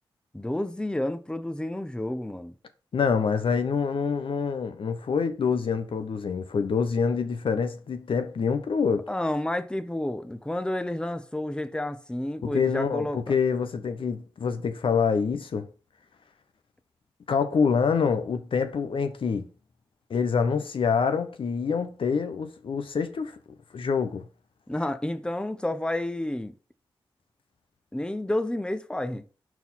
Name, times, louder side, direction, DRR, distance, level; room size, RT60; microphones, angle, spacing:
voice 1, 0.3-2.5 9.1-13.2 24.7-26.5 27.9-29.3, left 1 dB, 10° left, 0.7 m, -30 dB
voice 2, 2.9-9.0 12.4-15.7 17.3-19.5 20.1-23.4 23.7-24.2, left 5 dB, 70° left, 0.7 m, -26 dB
4.7 x 3.9 x 5.5 m
cardioid pair, 45°, 9 cm